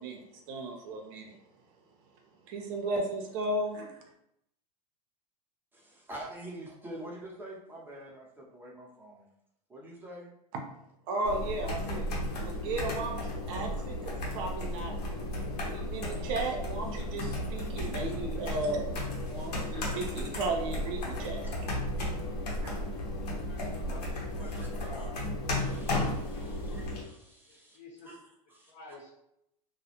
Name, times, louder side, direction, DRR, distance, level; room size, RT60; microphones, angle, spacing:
voice 1, 0.0-1.3 2.5-3.9 11.1-12.1 12.4-15.0 15.6-18.9 19.2-21.4 22.6-22.7, right 2 dB, 55° right, 2 dB, 0.5 m, -35 dB
voice 2, 5.7-9.3 9.7-10.3 18.4-18.6 20.9-21.0 21.4-21.5 24.4-24.7 24.9-25.1 25.6-27.8 28.0-28.2 28.5-28.7, right 1 dB, 10° right, -4 dB, 0.7 m, -46 dB
sound 1, 11.2-27.0, left 1 dB, 85° left, 0.8 m, -34 dB
voice 3, 23.4-25.2 27.5-28.1 28.7-29.2, left 2 dB, 40° left, -3 dB, 1.0 m, -50 dB
2.3 x 2.0 x 2.8 m, 0.80 s
hypercardioid pair, 110°, 20 cm